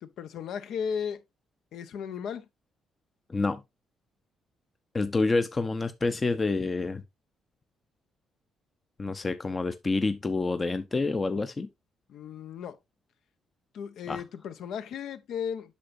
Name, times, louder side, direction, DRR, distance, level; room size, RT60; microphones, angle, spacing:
voice 1, 0.0-1.2 1.7-2.5 12.1-12.8 13.7-15.8, left 7 dB, 75° left, 0.8 m, -35 dB
voice 2, 3.3-3.6 4.9-7.0 9.0-11.7 14.1-14.2, left 3 dB, 25° left, 0.6 m, -28 dB
8.4 x 6.0 x 2.6 m
cardioid pair, 90°, 0 cm